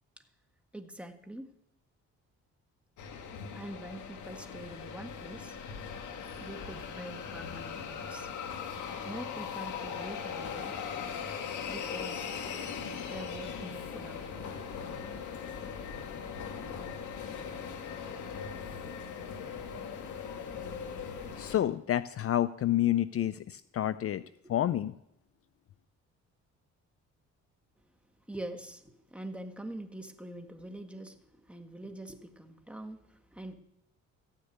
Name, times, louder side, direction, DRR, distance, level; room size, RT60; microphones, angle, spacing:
voice 1, 0.7-1.5 3.5-5.6 6.4-8.3 9.0-10.8 11.7-12.3 13.1-14.6 24.1-24.6 27.8-28.0 28.3-33.5, right 1 dB, 5° right, 5 dB, 1.7 m, -44 dB
sound 1, 3.0-21.6, left 6 dB, 80° left, 1.9 m, -39 dB
voice 2, 21.4-24.2 24.5-24.9, left 12 dB, 50° left, 15 dB, 0.5 m, -29 dB
14.5 x 6.6 x 9.2 m, 0.82 s
cardioid pair, 90°, 30 cm